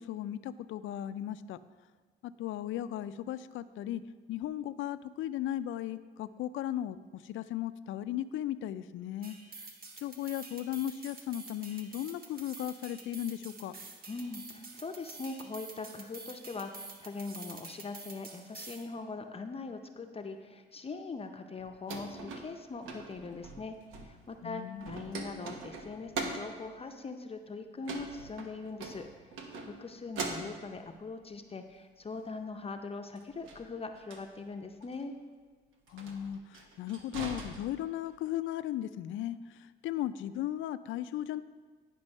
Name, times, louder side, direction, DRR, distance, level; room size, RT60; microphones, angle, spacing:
voice 1, 0.0-1.6 2.2-4.0 4.3-9.4 10.0-13.7 24.4-24.9 35.9-41.4, left 12 dB, 80° left, 13 dB, 0.4 m, -36 dB
sound 1, 9.2-18.9, right 4 dB, 45° right, 1.2 m, -48 dB
voice 2, 14.1-29.1 29.6-35.1, left 3 dB, 30° left, 5 dB, 0.6 m, -41 dB
sound 2, 21.6-24.5 24.7-26.6 27.8-29.8 30.1-31.0 33.2-34.2 34.8-35.0 35.9-38.2, right 3 dB, 85° right, 1.1 m, -42 dB
10.5 x 5.3 x 5.3 m, 1.4 s
cardioid pair, 90°, 20 cm